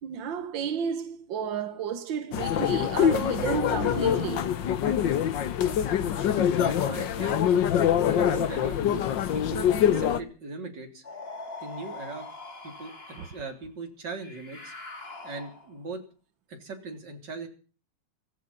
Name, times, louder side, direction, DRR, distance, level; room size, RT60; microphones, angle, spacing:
voice 1, 0.0-4.6 13.1-13.3, right 7 dB, 60° right, 1.3 m, -32 dB
sound 1, 2.3-10.2, left 9 dB, 65° left, 1.1 m, -24 dB
voice 2, 6.6-7.5 8.1-8.8 9.3-11.0 11.6-12.3 12.6-12.9 13.2-14.7 15.2-16.0 16.5-17.5, right 3 dB, 35° right, 3.8 m, -39 dB
sound 2, 11.0-13.5 14.2-15.8, left 3 dB, 20° left, 2.0 m, -42 dB
16.5 x 15.5 x 5.5 m
omnidirectional pair, 3.4 m